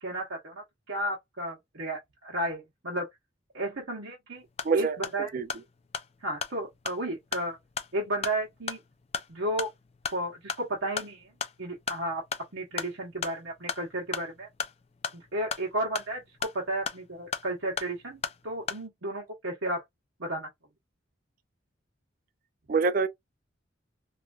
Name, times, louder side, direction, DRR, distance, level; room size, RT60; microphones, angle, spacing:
voice 1, 0.0-3.1 3.5-4.4 4.7-5.3 6.2-7.6 7.9-8.8 9.3-9.7 10.1-11.3 11.6-12.2 12.5-14.5 15.1-19.8 20.2-20.5, right 1 dB, 90° right, 1.0 m, -33 dB
sound 1, 4.4-18.9, left 6 dB, 30° left, 0.3 m, -38 dB
voice 2, 4.6-5.0 5.3-5.5 22.7-23.1, right 5 dB, 45° right, 0.4 m, -25 dB
3.1 x 2.4 x 2.3 m
head